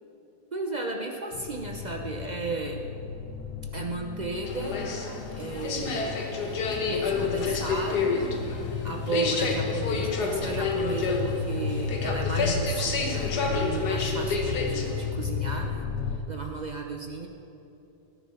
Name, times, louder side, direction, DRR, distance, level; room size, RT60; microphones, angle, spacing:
voice 1, 0.5-2.8 3.7-4.8 5.3-6.2 6.5-8.3 8.8-15.9 16.3-17.3, right 3 dB, 40° right, 2 dB, 0.6 m, -34 dB
sound 1, 1.3-16.2, left 6 dB, 90° left, 1.5 m, -34 dB
sound 2, 4.4-15.1, left 4 dB, 70° left, 1.7 m, -29 dB
18.5 x 10.5 x 4.3 m, 2.9 s
omnidirectional pair, 1.8 m